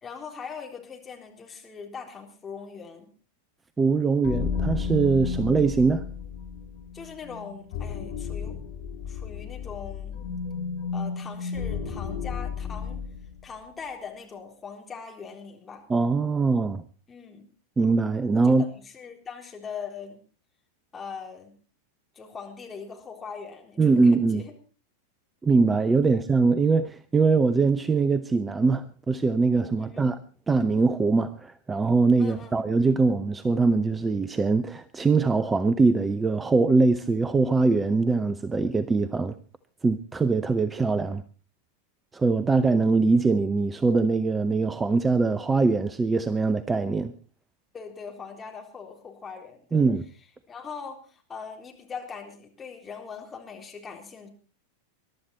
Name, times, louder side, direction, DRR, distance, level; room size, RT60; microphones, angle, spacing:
voice 1, 0.0-3.1 6.9-8.6 9.1-10.2 10.9-13.0 13.4-15.8 17.1-17.5 18.4-20.2 20.9-21.5 22.1-24.5 26.1-26.2 29.8-30.1 32.2-32.8 47.7-49.8 50.5-54.3, left 6 dB, 20° left, 3.9 m, -41 dB
voice 2, 3.8-6.1 15.9-16.8 17.8-18.7 23.8-24.4 25.4-30.2 30.5-39.3 39.8-41.2 42.1-47.1 49.7-50.0, right 4 dB, 15° right, 0.7 m, -22 dB
sound 1, 4.2-13.4, left 5 dB, 55° left, 2.6 m, -33 dB
22.0 x 12.0 x 4.3 m
figure-of-eight pair, 90°, 0 cm